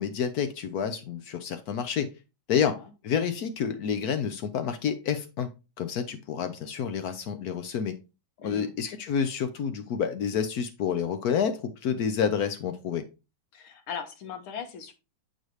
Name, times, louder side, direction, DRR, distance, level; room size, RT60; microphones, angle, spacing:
voice 1, 0.0-2.1 2.5-2.8 3.0-5.5 5.8-7.9 8.4-13.0, left 7 dB, 70° left, 9 dB, 0.9 m, -29 dB
voice 2, 2.5-2.9 8.4-8.8 13.5-14.9, left 7 dB, 85° left, 7 dB, 1.8 m, -39 dB
8.4 x 4.0 x 3.1 m, 0.28 s
omnidirectional pair, 2.2 m